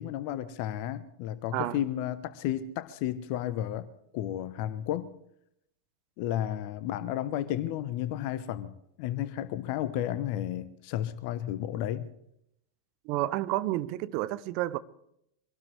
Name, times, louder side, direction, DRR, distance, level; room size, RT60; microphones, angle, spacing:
voice 1, 0.0-3.9 4.1-5.1 6.2-12.1, left 12 dB, 45° left, 0.8 m, -32 dB
voice 2, 13.0-14.8, right 16 dB, 45° right, 0.7 m, -30 dB
24.0 x 17.5 x 3.3 m
figure-of-eight pair, 90°, 0 cm